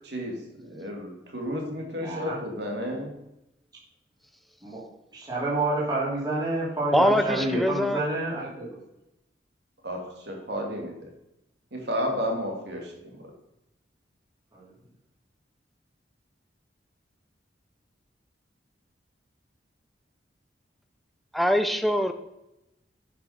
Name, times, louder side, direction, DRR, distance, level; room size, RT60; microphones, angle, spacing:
voice 1, 0.0-3.1 9.8-11.1 11.7-13.3, equal, 65° right, 1 dB, 2.6 m, -32 dB
voice 2, 2.0-2.4 4.6-4.8 5.1-8.8 14.5-14.7, right 2 dB, 25° right, -7 dB, 3.2 m, -29 dB
voice 3, 6.9-8.0 21.3-22.1, equal, ahead, 8 dB, 0.7 m, -23 dB
10.0 x 6.1 x 5.8 m, 0.88 s
head